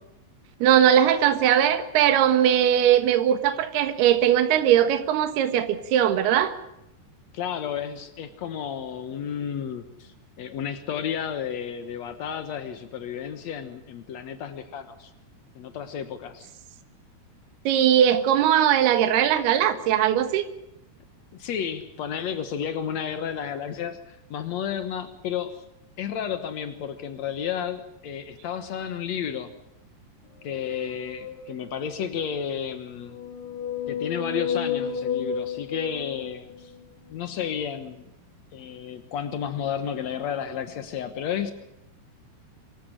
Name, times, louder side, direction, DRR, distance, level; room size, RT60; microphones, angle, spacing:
voice 1, 0.6-6.5 17.6-20.5, right 10 dB, 70° right, 9 dB, 3.4 m, -20 dB
voice 2, 7.3-15.1 15.5-16.5 21.3-25.6 26.0-29.5 30.4-33.2 33.9-36.7 37.1-38.1 38.5-41.5, left 8 dB, 85° left, 9 dB, 1.5 m, -32 dB
sound 1, 30.4-32.0 32.9-36.8, left 7 dB, 55° left, 3.7 m, -32 dB
24.5 x 14.5 x 10.0 m, 0.88 s
omnidirectional pair, 5.1 m